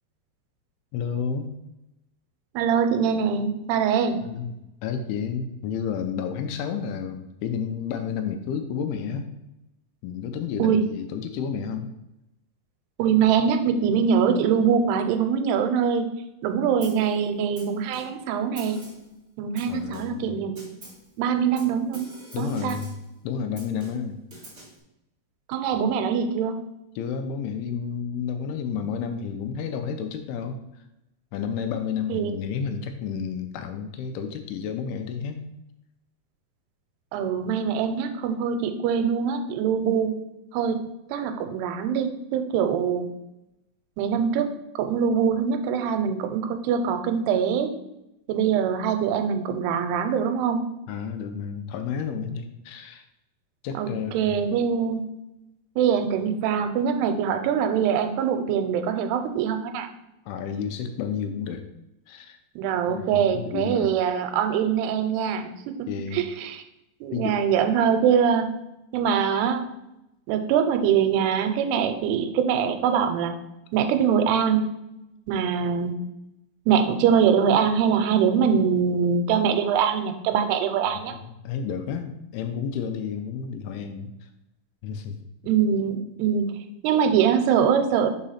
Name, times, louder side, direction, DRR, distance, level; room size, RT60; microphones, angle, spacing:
voice 1, 0.9-1.5 4.2-4.5 4.8-9.3 10.0-11.9 19.7-20.4 22.3-23.0 23.2-24.2 27.0-30.6 31.3-35.4 50.9-53.0 53.6-54.4 60.3-61.7 62.1-62.4 62.9-63.9 65.9-66.2 67.1-67.4 80.9-84.3 84.8-85.2, left 7 dB, 80° left, 7 dB, 2.5 m, -31 dB
voice 2, 2.6-4.2 10.6-10.8 13.0-16.1 16.4-18.8 19.4-20.7 21.2-22.1 22.4-22.8 25.5-26.6 32.1-32.3 37.1-40.1 40.5-40.8 41.1-43.1 44.0-47.7 48.3-50.6 53.8-53.9 54.1-55.1 55.8-59.9 62.6-65.5 66.1-66.6 67.0-68.5 68.9-69.7 70.3-73.4 73.7-74.6 75.3-76.0 76.7-81.1 85.4-86.5 86.8-88.1, right 7 dB, 85° right, 7 dB, 2.6 m, -23 dB
Snare drum, 16.8-17.1 17.6-18.3 18.6-19.1 19.6-20.3 20.6-21.1 21.6-23.1 23.6-24.8, right 1 dB, 25° right, 1.6 m, -46 dB
5.0 x 4.8 x 5.6 m, 0.89 s
omnidirectional pair, 4.7 m